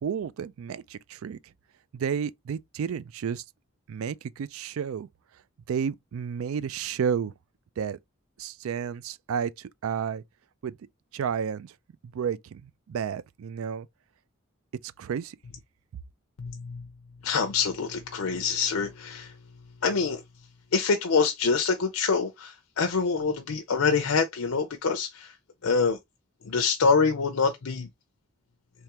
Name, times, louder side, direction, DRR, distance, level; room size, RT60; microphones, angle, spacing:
voice 1, 0.0-1.4 1.9-3.4 3.9-5.1 5.7-7.3 7.8-8.0 8.4-10.2 10.6-10.7 11.1-11.7 12.1-13.9 15.0-15.4, right 7 dB, 80° right, 0.3 m, -31 dB
voice 2, 16.4-16.8 17.2-19.3 19.8-20.2 20.7-25.3 25.6-26.0 26.5-27.9, left 5 dB, 85° left, 0.6 m, -25 dB
3.5 x 3.2 x 2.9 m
head